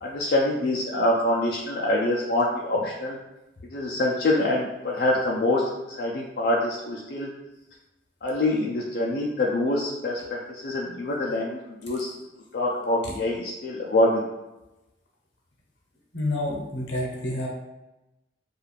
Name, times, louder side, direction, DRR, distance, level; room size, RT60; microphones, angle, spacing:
voice 1, 0.0-3.2 3.7-7.3 8.2-12.1 12.5-14.3, left 1 dB, 60° left, -3 dB, 0.3 m, -25 dB
voice 2, 16.1-17.5, left 1 dB, 85° left, -1 dB, 0.7 m, -28 dB
2.4 x 2.3 x 3.1 m, 0.98 s
head